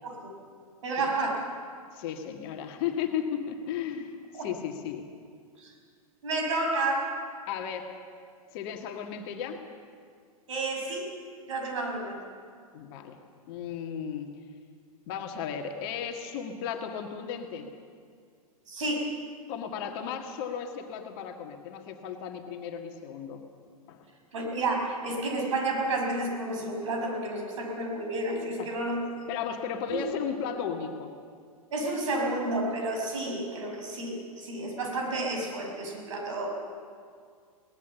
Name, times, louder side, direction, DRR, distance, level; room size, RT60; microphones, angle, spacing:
voice 1, 0.0-0.3 0.8-1.4 4.3-4.5 5.6-5.7 6.2-7.2 10.5-11.1 11.5-12.2 18.7-19.2 24.3-29.3 29.9-30.0 31.7-36.5, right 2 dB, 55° right, 1 dB, 6.0 m, -31 dB
voice 2, 1.9-5.1 7.5-7.9 8.5-9.6 12.7-13.2 13.5-14.3 15.1-17.7 19.5-23.4 23.9-24.1 28.6-28.7 29.3-31.1, left 8 dB, 40° left, 4 dB, 1.8 m, -35 dB
22.5 x 19.0 x 7.1 m, 2.1 s
figure-of-eight pair, 100°, 19 cm